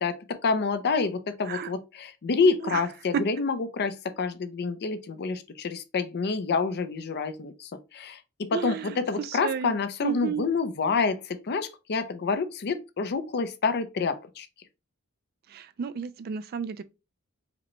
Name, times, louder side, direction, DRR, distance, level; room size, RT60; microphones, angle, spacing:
voice 1, 0.0-14.5, left 4 dB, 50° left, 0.5 m, -28 dB
voice 2, 8.5-9.7 10.0-10.4 15.5-16.8, right 7 dB, 45° right, 0.3 m, -32 dB
4.9 x 2.2 x 2.9 m
head